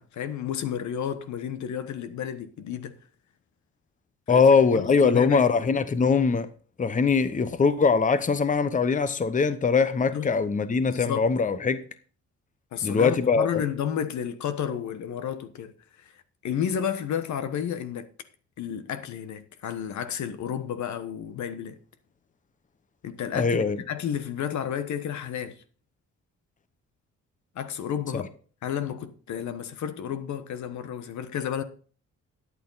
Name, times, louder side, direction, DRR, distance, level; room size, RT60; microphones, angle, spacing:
voice 1, 0.0-3.0 4.3-5.5 10.1-10.3 10.9-11.3 12.7-18.1 18.6-21.8 23.0-25.6 27.5-28.3 28.6-31.6, left 9 dB, 70° left, 1.2 m, -32 dB
voice 2, 4.3-6.5 6.8-11.8 12.8-13.6 23.3-23.8 28.1-28.2, left 5 dB, 25° left, 0.9 m, -22 dB
12.5 x 8.7 x 4.0 m
cardioid pair, 90°, 30 cm